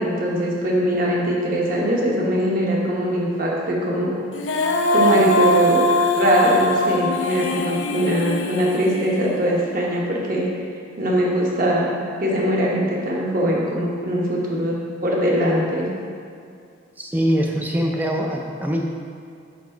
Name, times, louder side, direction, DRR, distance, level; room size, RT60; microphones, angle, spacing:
voice 1, 0.0-4.2 4.9-5.8 6.1-10.5 11.0-11.9 12.2-15.9, equal, 45° right, -3 dB, 1.0 m, -21 dB
Female singing, 4.3-9.5, left 1 dB, 65° left, 0.4 m, -21 dB
voice 2, 17.0-18.9, equal, 10° right, 1 dB, 0.4 m, -23 dB
6.1 x 4.0 x 4.4 m, 2.4 s
head